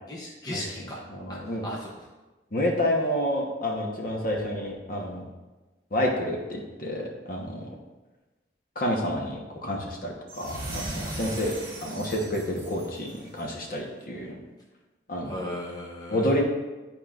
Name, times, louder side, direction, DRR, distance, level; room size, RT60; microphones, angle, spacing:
voice 1, 0.1-1.0 1.3-2.1 15.3-16.3, left 1 dB, 20° left, -3 dB, 0.8 m, -36 dB
voice 2, 1.1-1.7 2.5-5.3 5.9-7.7 8.7-11.5 11.8-14.4 15.1-15.4 16.1-16.4, left 1 dB, 50° left, 0 dB, 1.2 m, -29 dB
sound 1, 10.3-13.6, right 1 dB, 25° right, 1.7 m, -38 dB
11.0 x 4.4 x 2.5 m, 1.1 s
head